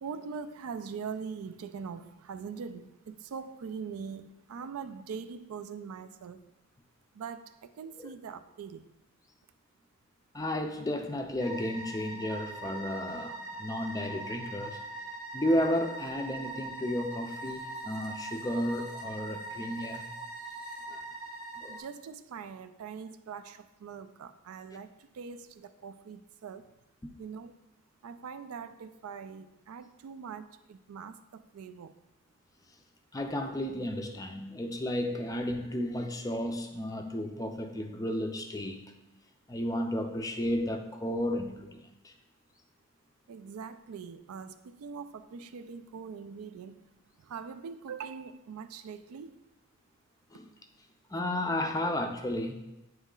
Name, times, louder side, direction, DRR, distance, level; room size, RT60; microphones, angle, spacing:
voice 1, 0.0-6.4 7.2-8.8 21.7-26.7 27.2-27.5 28.0-31.9 43.3-46.8 47.3-49.3, right 6 dB, 75° right, 0.4 m, -42 dB
voice 2, 10.3-14.8 15.3-20.1 20.9-21.0 21.6-21.8 27.0-27.1 33.1-38.8 39.5-42.1 50.3-50.5 51.1-52.5, left 1 dB, 15° left, 0.4 m, -33 dB
sound 1, 11.4-21.8, right 2 dB, 5° right, 0.8 m, -41 dB
9.0 x 3.1 x 3.7 m
head